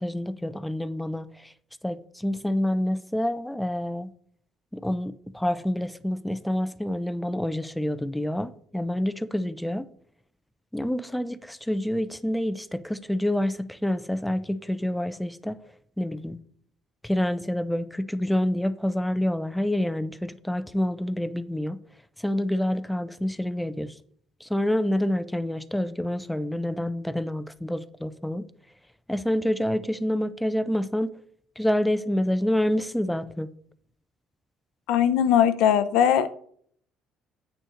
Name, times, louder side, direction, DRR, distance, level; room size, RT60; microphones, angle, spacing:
voice 1, 0.0-1.5 1.8-4.1 4.7-9.9 10.7-15.6 16.0-16.4 17.0-21.8 22.2-24.0 24.4-28.5 29.1-31.2 31.6-33.5, left 1 dB, 5° left, 0.4 m, -27 dB
voice 2, 34.9-36.3, left 9 dB, 80° left, 0.6 m, -20 dB
9.0 x 6.5 x 3.8 m
cardioid pair, 110°, 0 cm